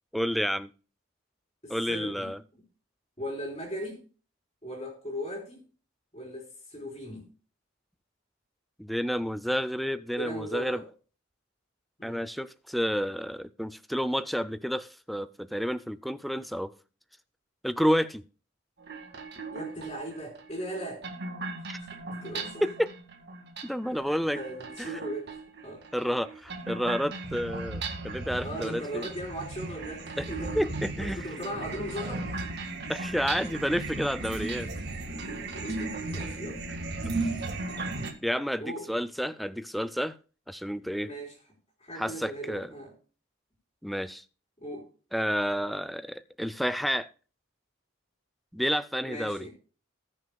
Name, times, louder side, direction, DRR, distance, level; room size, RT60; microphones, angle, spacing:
voice 1, 0.1-0.7 1.7-2.4 8.8-10.8 12.0-16.7 17.6-18.2 22.6-22.9 23.6-24.4 25.9-29.1 30.2-30.3 30.5-31.2 32.9-34.7 37.2-37.3 38.2-40.2 40.5-41.1 42.0-42.7 43.8-44.2 45.1-47.1 48.5-49.5, equal, ahead, 0.4 m, -30 dB
voice 2, 1.6-2.6 3.2-4.0 4.6-5.6 6.1-7.3 10.2-10.9 12.0-12.3 19.5-21.1 21.6-22.6 24.3-25.3 25.6-25.8 28.4-32.4 35.2-36.6 38.6-38.9 41.0-41.4 41.8-42.9 44.6-44.9 49.0-49.5, equal, 25° left, 3.6 m, -38 dB
sound 1, 18.8-38.1, right 3 dB, 50° right, 2.0 m, -36 dB
19.5 x 6.5 x 2.3 m
head